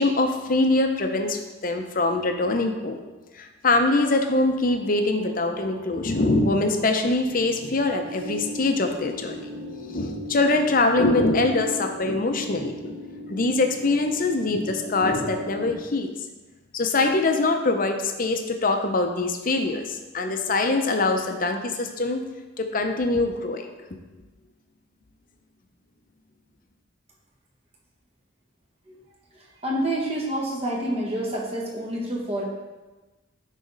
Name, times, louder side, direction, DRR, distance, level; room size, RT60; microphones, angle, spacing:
voice 1, 0.0-3.0 3.3-9.5 9.9-13.0 13.3-16.1 16.7-22.2 22.6-23.7, left 2 dB, 45° left, 5 dB, 0.7 m, -23 dB
sound 1, 4.4-15.7, equal, 50° right, 1.0 m, -38 dB
voice 2, 29.3-32.4, right 1 dB, 30° right, -2 dB, 1.4 m, -28 dB
10.5 x 4.1 x 4.0 m, 1.2 s
head